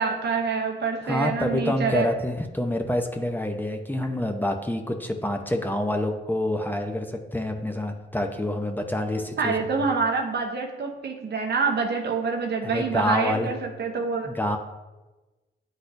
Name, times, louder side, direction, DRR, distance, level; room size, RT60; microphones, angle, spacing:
voice 1, 0.0-2.1 9.4-14.4, right 4 dB, 60° right, 0.8 m, -26 dB
voice 2, 1.0-9.7 12.6-13.5 14.3-14.6, left 1 dB, 10° left, 0.8 m, -27 dB
9.7 x 4.1 x 2.6 m
cardioid pair, 55°, 19 cm